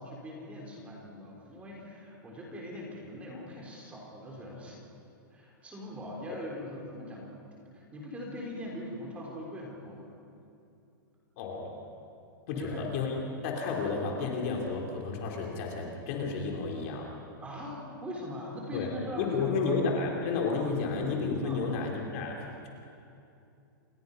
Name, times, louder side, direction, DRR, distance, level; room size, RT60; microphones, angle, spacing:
voice 1, 0.0-4.8 5.3-10.2 12.5-12.9 17.4-19.8 21.4-21.6, equal, 10° right, -2 dB, 3.9 m, -41 dB
voice 2, 11.4-11.8 12.5-13.1 13.4-17.1 18.7-18.9 19.2-22.7, left 4 dB, 40° left, 0 dB, 3.8 m, -31 dB
28.5 x 22.5 x 5.6 m, 2.7 s
supercardioid pair, 170°, 11 cm